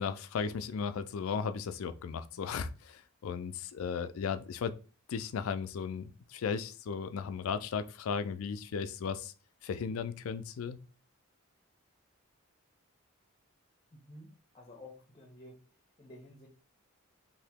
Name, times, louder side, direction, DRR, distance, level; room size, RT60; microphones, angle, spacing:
voice 1, 0.0-4.7 5.1-9.3 9.6-10.8, left 6 dB, 80° left, 0.4 m, -36 dB
voice 2, 14.5-15.6 16.0-16.5, left 1 dB, 25° left, 0.6 m, -51 dB
2.8 x 2.6 x 3.4 m
head